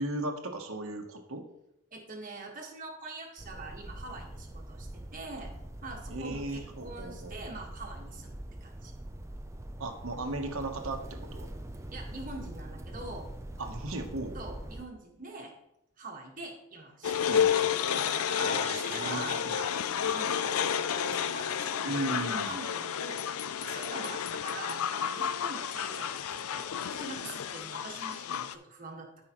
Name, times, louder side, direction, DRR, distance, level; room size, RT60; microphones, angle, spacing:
voice 1, 0.0-1.4 6.1-7.4 9.8-11.5 13.6-14.4 17.3-17.6 18.4-19.6 21.8-22.6, right 2 dB, 70° right, 5 dB, 1.1 m, -36 dB
voice 2, 1.9-5.5 5.8-8.9 11.9-13.3 14.3-15.5 16.0-17.4 17.9-19.7 20.0-23.2 23.6-29.2, right 3 dB, 40° right, 0 dB, 1.6 m, -44 dB
sound 1, 3.4-14.9, right 1 dB, 15° right, 0.4 m, -43 dB
sound 2, 17.0-28.5, left 8 dB, 80° left, 0.4 m, -31 dB
13.0 x 5.6 x 3.0 m, 0.83 s
head